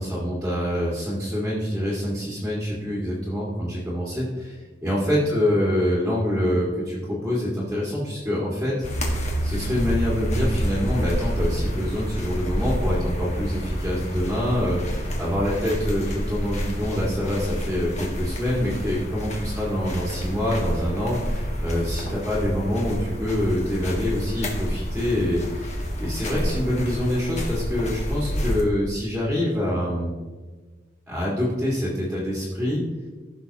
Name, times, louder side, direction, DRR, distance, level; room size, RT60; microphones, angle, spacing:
voice 1, 0.0-8.7 9.4-30.1 31.1-32.8, left 1 dB, 5° right, -5 dB, 2.1 m, -26 dB
sound 1, 8.8-28.6, equal, 40° left, 1.6 m, -28 dB
15.5 x 6.1 x 2.9 m, 1.4 s
head